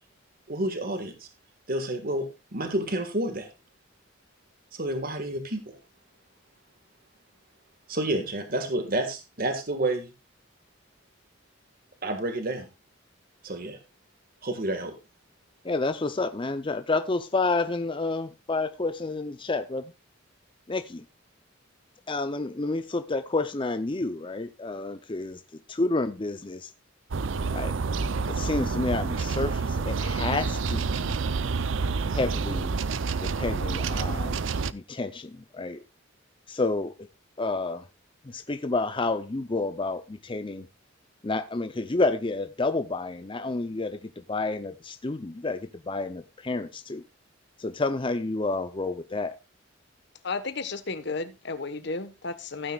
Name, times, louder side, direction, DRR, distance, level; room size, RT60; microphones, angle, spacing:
voice 1, 0.5-1.3 1.7-2.3 2.5-3.5 4.7-5.8 7.9-10.1 12.0-12.7 13.4-13.8 14.4-14.9, right 1 dB, 45° right, 1.7 m, -29 dB
voice 2, 15.6-19.9 20.7-21.0 22.1-26.7 27.5-27.7 28.3-31.2 32.1-32.8 33.2-34.4 34.7-35.8 36.5-36.9 37.4-37.9 38.2-40.7 41.2-47.0 47.6-49.3, left 3 dB, 25° left, 0.6 m, -30 dB
sound 1, 27.1-34.7, right 4 dB, 70° right, 0.6 m, -28 dB
voice 3, 50.2-52.7, left 4 dB, 60° left, 1.3 m, -33 dB
15.5 x 9.3 x 2.4 m
head